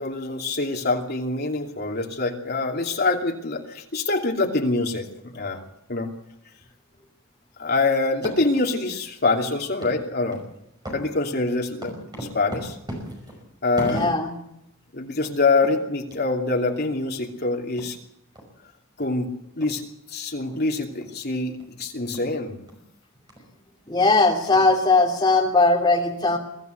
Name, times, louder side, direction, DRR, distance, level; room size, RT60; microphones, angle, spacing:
voice 1, 0.0-5.6 5.9-6.1 7.6-10.4 10.9-12.8 13.6-14.0 14.9-18.0 19.0-19.3 19.5-19.8 20.1-22.6, left 3 dB, 45° left, 1 dB, 2.8 m, -25 dB
sound 1, 8.1-8.7 9.1-9.2 9.8-10.0 10.3-10.5 10.8-14.4 14.8-14.9 15.2-15.4 15.6-15.8 16.1-16.2 16.7-16.8 17.2-17.3 17.8-17.9 18.4-18.5 19.0-19.1 19.6-19.7 20.4-20.6 21.0-21.2 21.6-21.7 22.1-22.3 22.7-22.8 23.3-23.4 24.0-24.1 24.5-25.1, right 1 dB, 20° right, 5.5 m, -36 dB
voice 2, 13.8-14.3 23.9-26.4, left 3 dB, 20° left, 1 dB, 3.2 m, -19 dB
23.0 x 14.0 x 8.2 m, 0.82 s
head